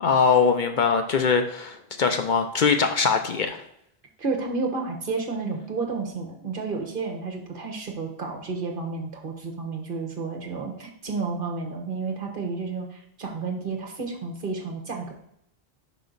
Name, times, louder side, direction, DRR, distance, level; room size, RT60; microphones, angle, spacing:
voice 1, 0.0-3.6, left 5 dB, 55° left, 6 dB, 0.7 m, -22 dB
voice 2, 4.2-15.1, right 4 dB, 55° right, 1 dB, 1.3 m, -31 dB
5.7 x 5.1 x 3.9 m, 0.75 s
omnidirectional pair, 1.0 m